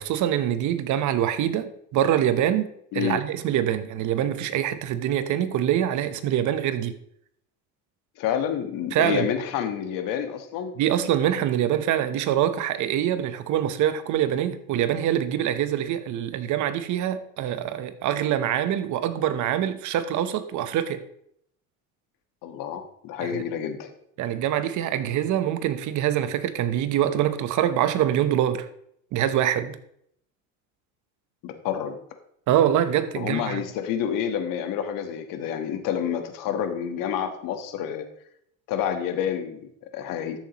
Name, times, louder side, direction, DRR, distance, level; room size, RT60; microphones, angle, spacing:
voice 1, 0.0-7.0 8.9-9.3 10.8-21.0 23.2-23.4 24.2-28.7 29.1-29.8 32.5-33.6, right 10 dB, 50° right, 0.9 m, -24 dB
voice 2, 8.2-10.8 22.4-23.9 31.4-32.0 33.1-38.0 38.7-40.4, left 9 dB, 60° left, 1.4 m, -29 dB
13.0 x 7.5 x 3.0 m
supercardioid pair, 120°, 38 cm